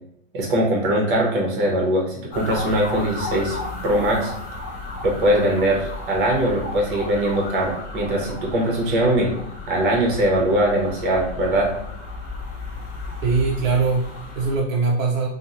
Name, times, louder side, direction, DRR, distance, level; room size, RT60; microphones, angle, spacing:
voice 1, 0.3-3.6 3.8-4.3 5.0-9.3 9.7-11.7, right 1 dB, 45° right, -1 dB, 0.9 m, -21 dB
sound 1, 2.3-14.6, left 2 dB, 15° left, 0.5 m, -34 dB
voice 2, 13.2-15.3, right 4 dB, 90° right, -1 dB, 0.7 m, -22 dB
2.9 x 2.3 x 2.6 m, 0.73 s
supercardioid pair, 165°, 38 cm